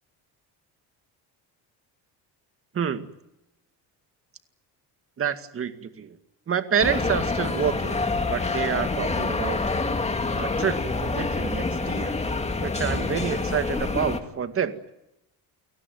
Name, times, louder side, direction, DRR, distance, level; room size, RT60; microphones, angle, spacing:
voice 1, 2.7-3.1 5.2-6.2 6.5-9.6 10.4-12.2 12.6-14.7, right 7 dB, 35° right, 9 dB, 2.2 m, -28 dB
sound 1, 6.8-14.2, left 3 dB, 15° left, 2.4 m, -27 dB
30.0 x 18.0 x 9.5 m, 0.87 s
cardioid pair, 140°, 40 cm